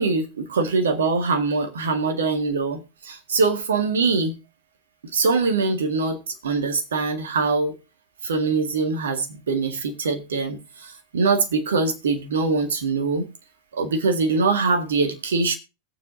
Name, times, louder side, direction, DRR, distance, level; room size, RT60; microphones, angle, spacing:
voice 1, 0.0-4.4 5.1-7.7 8.2-13.2 13.7-15.5, right 4 dB, 65° right, 1.8 m, -23 dB
20.5 x 7.3 x 2.7 m
figure-of-eight pair, 90°, 0 cm